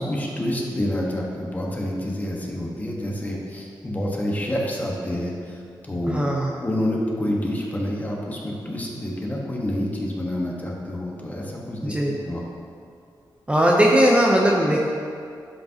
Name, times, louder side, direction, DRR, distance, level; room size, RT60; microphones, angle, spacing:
voice 1, 0.0-6.2 6.6-12.4, left 1 dB, 20° left, -2 dB, 1.3 m, -28 dB
voice 2, 6.1-6.5 11.8-12.1 13.5-14.8, equal, 15° right, -2 dB, 0.7 m, -18 dB
11.5 x 5.1 x 2.9 m, 2.3 s
cardioid pair, 95°, 8 cm